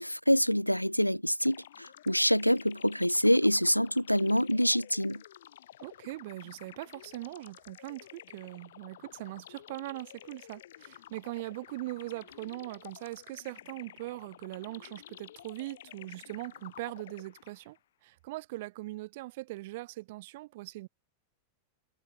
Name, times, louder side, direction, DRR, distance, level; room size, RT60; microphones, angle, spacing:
voice 1, 0.0-5.2, equal, 90° left, 0.9 m, -26 dB
sound 1, 1.4-17.8, left 12 dB, 60° left, 3.2 m, -52 dB
voice 2, 5.8-17.8 18.0-20.9, right 19 dB, 50° right, 4.2 m, -41 dB
figure-of-eight pair, 90°, 0 cm